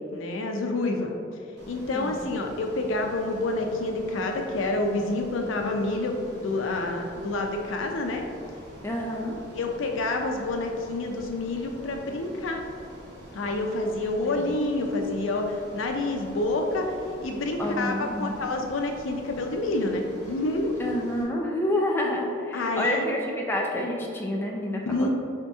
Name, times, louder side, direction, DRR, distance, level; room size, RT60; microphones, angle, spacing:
voice 1, 0.1-1.1 1.7-8.3 9.5-12.6 13.3-17.0 17.2-20.8 22.5-23.1 24.9-25.1, left 2 dB, 90° left, 3 dB, 0.5 m, -28 dB
Ocean, 1.6-21.2, equal, 55° right, 1.0 m, -46 dB
voice 2, 8.8-9.4 14.4-14.5 17.6-18.4 20.8-25.1, left 1 dB, 10° left, -2 dB, 0.4 m, -28 dB
5.1 x 2.8 x 3.5 m, 2.5 s
head